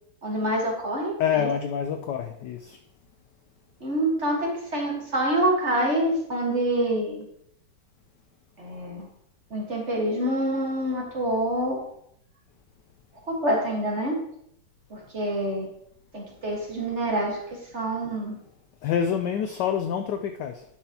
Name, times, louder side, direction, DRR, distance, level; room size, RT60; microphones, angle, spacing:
voice 1, 0.2-1.5 3.8-7.2 8.6-9.1 9.5-11.8 13.3-14.2 14.9-15.7 16.1-18.4, right 1 dB, 35° right, -1 dB, 1.6 m, -26 dB
voice 2, 1.2-2.8 18.8-20.6, left 8 dB, 75° left, 7 dB, 1.0 m, -27 dB
10.0 x 5.9 x 2.8 m, 0.72 s
omnidirectional pair, 2.3 m